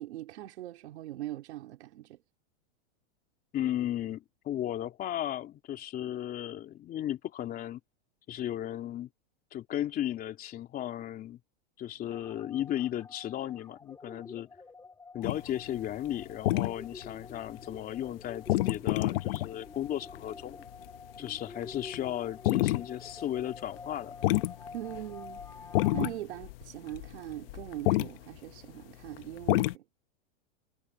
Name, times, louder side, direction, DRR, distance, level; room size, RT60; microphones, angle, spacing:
voice 1, 0.0-2.2 24.7-25.4 25.9-29.8, right 14 dB, 75° right, 4.6 m, -41 dB
voice 2, 3.5-7.8 8.3-9.1 9.5-11.4 11.8-14.5 15.1-20.6 21.2-24.1, left 12 dB, 25° left, 3.0 m, -35 dB
sound 1, 12.1-26.1, left 4 dB, 10° left, 5.2 m, -49 dB
sound 2, 15.2-16.1 16.4-17.8 18.1-18.2 18.5-19.5 20.1-20.3 20.6-20.7 21.3-22.1 22.4-22.8 23.1-23.2 23.5-23.6 23.9-24.0 24.2-28.1 29.1-29.7, left 17 dB, 55° left, 1.2 m, -28 dB
supercardioid pair, 150°, 34 cm